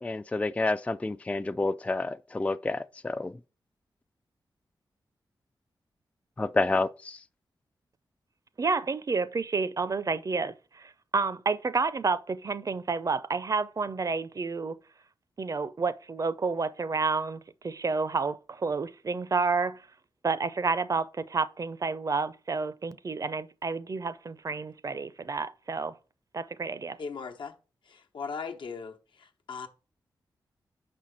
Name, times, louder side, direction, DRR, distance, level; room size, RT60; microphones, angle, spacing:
voice 1, 0.0-3.3 6.4-7.2, left 2 dB, 15° left, 0.3 m, -29 dB
voice 2, 8.6-14.8 15.4-19.8 20.2-25.9 26.3-27.0, right 4 dB, 45° right, 0.5 m, -30 dB
voice 3, 27.0-27.5 27.9-29.7, left 5 dB, 75° left, 1.0 m, -38 dB
5.7 x 4.3 x 6.2 m
cardioid pair, 70°, 8 cm